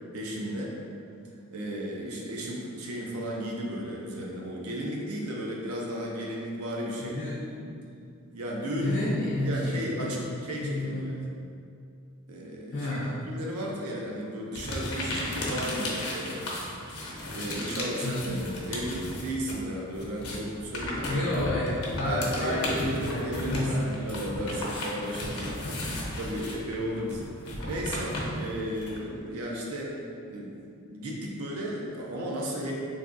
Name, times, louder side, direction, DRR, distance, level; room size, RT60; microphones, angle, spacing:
voice 1, 0.1-0.8 1.5-7.2 8.3-9.0 9.4-11.3 12.3-13.0 13.3-16.4 16.9-17.0 17.3-21.5 22.1-25.7 26.1-27.3 27.7-30.0 30.3-32.7, equal, 75° right, -2 dB, 0.5 m, -34 dB
voice 2, 7.0-7.9 8.8-10.3 10.6-11.2 12.7-13.3 18.0-18.5 21.1-23.9, left 1 dB, 55° left, -6 dB, 0.4 m, -31 dB
sound 1, 14.5-19.6 19.9-29.0, left 1 dB, 90° left, 0.7 m, -35 dB
3.3 x 2.5 x 2.5 m, 2.4 s
head